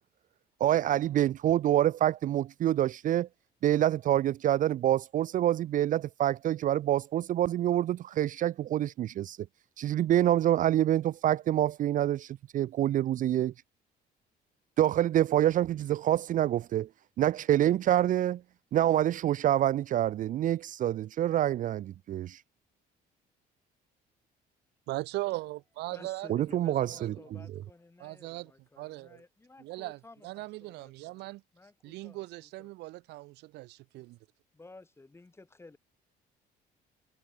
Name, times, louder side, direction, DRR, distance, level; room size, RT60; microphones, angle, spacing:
voice 1, 0.6-3.3 3.6-9.4 9.8-13.5 14.8-16.9 17.2-18.4 18.7-22.4 26.3-27.1, right 12 dB, 50° right, 0.5 m, -26 dB
voice 2, 24.9-26.3 27.0-27.1 28.0-28.5 28.8-29.2 29.6-31.4 31.8-34.2, right 20 dB, 85° right, 0.8 m, -39 dB
voice 3, 25.9-32.7 34.5-35.8, left 3 dB, 15° left, 2.8 m, -54 dB
cardioid pair, 110°, 17 cm